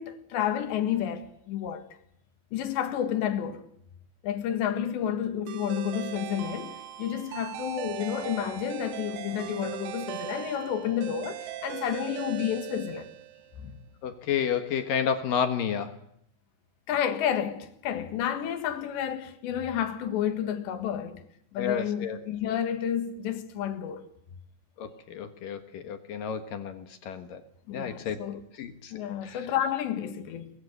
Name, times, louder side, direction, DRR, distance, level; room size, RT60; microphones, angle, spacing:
voice 1, 0.0-1.9 2.5-3.7 4.2-13.1 13.6-13.8 16.9-21.2 21.5-24.0 27.7-28.4 28.9-30.5, left 9 dB, 80° left, 3.9 m, -30 dB
sound 1, 5.5-13.6, right 13 dB, 80° right, 3.4 m, -39 dB
voice 2, 14.0-15.9 21.6-22.2 24.8-27.4 27.7-28.2 28.6-28.9 29.2-29.5, left 8 dB, 65° left, 2.6 m, -31 dB
23.0 x 21.0 x 6.6 m
omnidirectional pair, 5.0 m